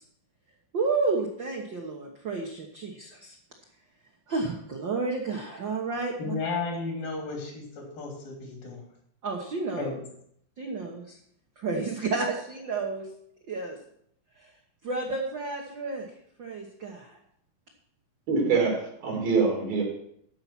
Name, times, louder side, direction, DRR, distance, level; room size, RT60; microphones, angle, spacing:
voice 1, 0.7-3.3 4.3-6.3 9.2-9.9 10.6-11.2 11.6-13.1 13.5-13.8 14.4-14.5 14.8-16.0 16.4-17.2, right 3 dB, 65° right, 0 dB, 1.1 m, -31 dB
voice 2, 6.2-8.8 9.8-10.0, left 3 dB, 80° left, 0 dB, 4.8 m, -33 dB
voice 3, 18.3-19.8, right 4 dB, 80° right, -1 dB, 4.9 m, -24 dB
13.5 x 5.7 x 5.9 m, 0.70 s
omnidirectional pair, 4.1 m